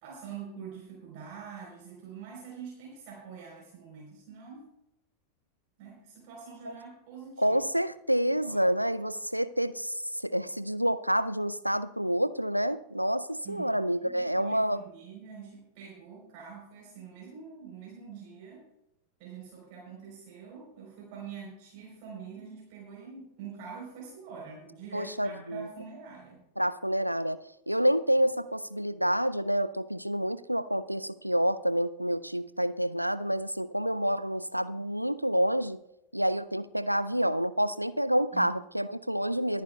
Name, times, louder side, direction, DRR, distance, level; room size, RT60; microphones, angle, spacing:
voice 1, 0.0-4.7 5.8-7.6 8.4-8.7 13.4-18.7 19.2-26.4 38.3-38.5, right 6 dB, 45° right, -3 dB, 3.8 m, -45 dB
voice 2, 7.4-14.8 24.9-25.7 26.6-27.4 27.7-35.8 36.1-39.6, equal, 90° right, 15 dB, 0.4 m, -28 dB
25.0 x 9.5 x 2.3 m, 0.88 s
figure-of-eight pair, 90°, 0 cm